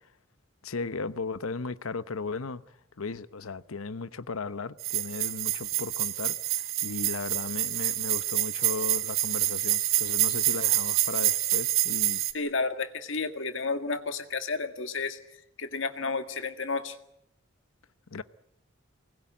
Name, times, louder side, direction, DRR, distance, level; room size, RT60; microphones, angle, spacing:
voice 1, 0.6-2.6 3.0-12.2 18.1-18.2, left 4 dB, 90° left, 0.9 m, -36 dB
sound 1, 4.8-12.3, right 14 dB, 80° right, 1.6 m, -27 dB
voice 2, 12.3-15.2 15.6-16.9, left 4 dB, 65° left, 1.9 m, -31 dB
24.5 x 20.5 x 8.9 m
head